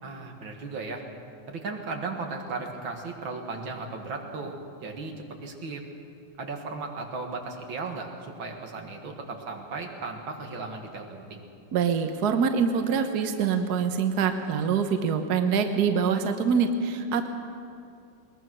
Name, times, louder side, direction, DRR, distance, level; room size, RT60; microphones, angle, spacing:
voice 1, 0.0-1.0 1.5-4.6 4.8-5.1 5.4-5.8 6.4-11.5, right 3 dB, 80° right, 3 dB, 2.6 m, -36 dB
voice 2, 11.7-17.3, right 6 dB, 60° right, 6 dB, 1.4 m, -25 dB
21.5 x 20.0 x 6.2 m, 2.5 s
omnidirectional pair, 2.1 m